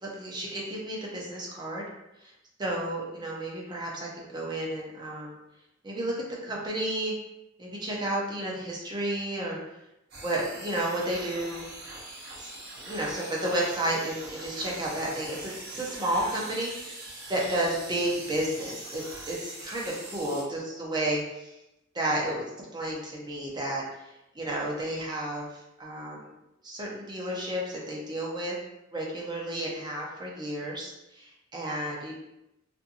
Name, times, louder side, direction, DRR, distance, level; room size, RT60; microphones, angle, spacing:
voice 1, 0.0-1.8 2.6-5.3 5.8-7.1 7.6-9.6 10.2-11.7 12.4-12.5 12.8-17.0 17.3-21.5 21.9-22.4 22.7-24.1 24.3-26.3 26.6-28.6 28.9-32.1, right 1 dB, 20° right, -3 dB, 0.6 m, -32 dB
sound 1, 10.1-20.4, right 1 dB, 55° right, 0.9 m, -42 dB
2.7 x 2.5 x 2.5 m, 0.89 s
head